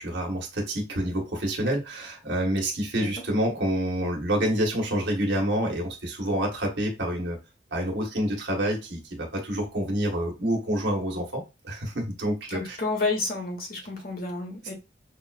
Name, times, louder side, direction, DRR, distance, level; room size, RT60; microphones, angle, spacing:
voice 1, 0.0-7.4 7.7-12.8, right 1 dB, 70° right, 1.4 m, -28 dB
voice 2, 12.5-14.7, left 3 dB, 55° left, 1.2 m, -30 dB
5.4 x 2.5 x 2.4 m
head